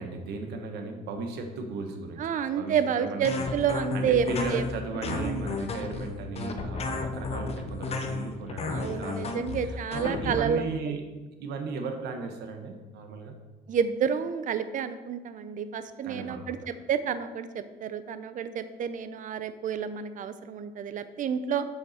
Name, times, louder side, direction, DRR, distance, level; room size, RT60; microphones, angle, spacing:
voice 1, 0.0-3.5 3.9-11.0 11.4-13.3 16.0-16.7, right 3 dB, 80° right, 5 dB, 1.2 m, -36 dB
voice 2, 2.2-4.6 5.1-5.5 8.7-11.0 13.7-21.7, right 7 dB, 50° right, 11 dB, 0.6 m, -30 dB
sound 1, 3.2-10.4, left 4 dB, 40° left, 0.8 m, -33 dB
7.8 x 5.8 x 4.3 m, 1.2 s
cardioid pair, 110°, 17 cm